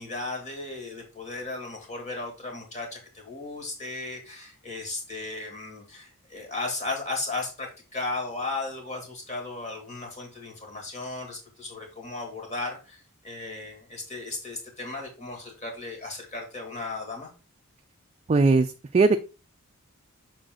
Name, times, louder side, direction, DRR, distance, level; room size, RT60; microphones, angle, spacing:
voice 1, 0.0-17.3, left 3 dB, 35° left, 1 dB, 2.5 m, -35 dB
voice 2, 18.3-19.2, right 3 dB, 30° right, 7 dB, 0.4 m, -20 dB
6.5 x 4.4 x 3.8 m, 0.31 s
head